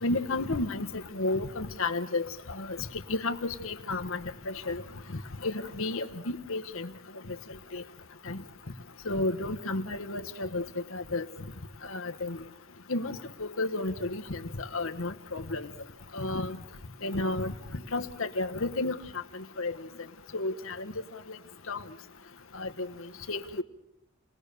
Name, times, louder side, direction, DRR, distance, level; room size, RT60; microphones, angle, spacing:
voice 1, 0.0-4.8 5.1-6.9 7.3-7.4 7.7-7.8 8.2-8.4 9.0-10.6 10.9-11.2 11.8-12.4 12.9-15.7 16.1-16.6 17.0-19.0 19.3-19.8 20.3-20.9 21.3-21.4 21.7-21.8 22.5-22.9 23.3-23.6, left 2 dB, 65° left, 1.3 m, -32 dB
29.0 x 19.5 x 6.9 m
head